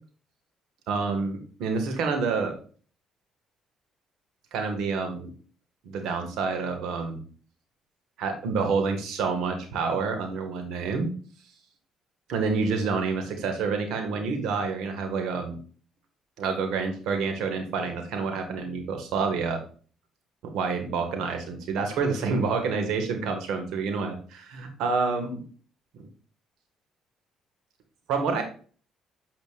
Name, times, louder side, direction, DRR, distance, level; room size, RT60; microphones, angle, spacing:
voice 1, 0.9-2.5 4.5-5.3 5.8-7.2 8.2-11.1 12.3-15.6 16.4-19.6 20.4-25.4 28.1-28.4, right 4 dB, 80° right, 4 dB, 1.9 m, -28 dB
9.0 x 5.8 x 2.6 m, 0.41 s
supercardioid pair, 75°, 0 cm